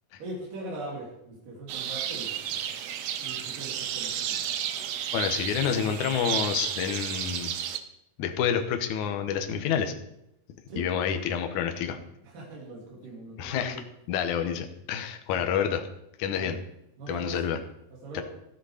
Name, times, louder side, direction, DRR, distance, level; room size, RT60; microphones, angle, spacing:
voice 1, 0.2-2.6 3.2-4.4 10.7-10.9 12.2-13.8 15.3-15.5 16.4-16.5 17.0-17.4 18.0-18.2, right 2 dB, 65° right, -4 dB, 4.6 m, -40 dB
sound 1, 1.7-7.8, right 10 dB, 90° right, 1.5 m, -32 dB
voice 2, 5.1-7.5 8.2-9.9 10.8-12.0 13.4-13.8 14.1-15.8 16.2-16.6 17.1-17.6 18.1-18.2, left 8 dB, 65° left, 6 dB, 2.3 m, -28 dB
13.0 x 10.5 x 5.0 m, 0.83 s
omnidirectional pair, 4.1 m